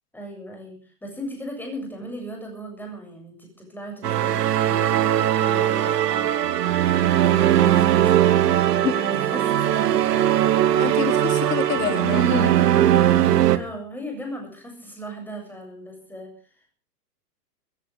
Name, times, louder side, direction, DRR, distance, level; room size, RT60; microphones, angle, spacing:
voice 1, 0.1-6.4 7.2-8.8 9.1-10.1 13.4-16.3, equal, 5° left, 2 dB, 7.4 m, -37 dB
sound 1, 4.0-13.6, right 12 dB, 85° right, 1.7 m, -19 dB
voice 2, 10.7-12.5, left 9 dB, 80° left, 7 dB, 3.4 m, -27 dB
23.0 x 15.5 x 3.6 m, 0.36 s
hypercardioid pair, 140°, 47 cm